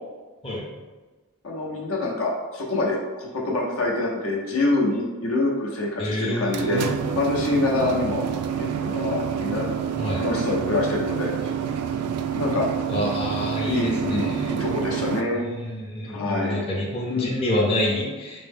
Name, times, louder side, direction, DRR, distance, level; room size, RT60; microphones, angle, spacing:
voice 1, 1.4-6.8 7.2-8.2 8.6-9.7 10.2-11.3 12.3-12.7 13.6-15.4 16.1-16.7 17.1-17.3, left 2 dB, 65° left, -2 dB, 0.7 m, -25 dB
voice 2, 6.0-6.9 10.0-10.2 12.9-14.5 15.6-18.5, left 1 dB, 25° left, -4 dB, 0.6 m, -27 dB
sound 1, 6.3-15.2, right 8 dB, 80° right, 0.3 m, -28 dB
4.3 x 2.1 x 3.4 m, 1.3 s
head